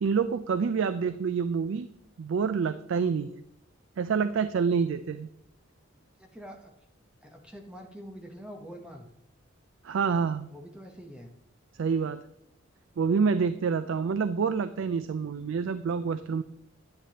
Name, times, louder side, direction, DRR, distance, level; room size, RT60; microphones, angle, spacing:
voice 1, 0.0-1.9 2.2-3.4 4.0-5.3 9.8-10.5 11.8-12.2 13.0-16.4, right 5 dB, 70° right, 12 dB, 0.4 m, -27 dB
voice 2, 6.2-6.7 7.2-9.1 10.5-11.3, equal, 5° right, 3 dB, 0.9 m, -45 dB
10.0 x 9.7 x 2.9 m, 0.77 s
head